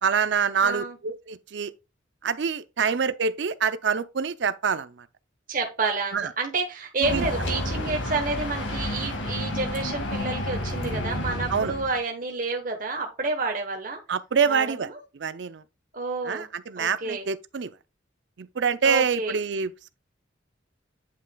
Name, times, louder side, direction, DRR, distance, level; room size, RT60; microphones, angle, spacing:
voice 1, 0.0-1.7 2.2-5.1 6.1-6.3 7.0-7.3 11.5-11.7 14.1-14.9 15.2-15.6 16.2-17.7 18.4-19.7, right 6 dB, 65° right, 0.5 m, -26 dB
voice 2, 0.6-1.0 5.5-14.0 14.5-14.9 15.9-16.5 16.8-17.2 18.8-19.4, right 3 dB, 45° right, 1.1 m, -29 dB
sound 1, 7.0-12.0, left 1 dB, 75° left, 1.8 m, -30 dB
9.7 x 5.7 x 2.3 m
head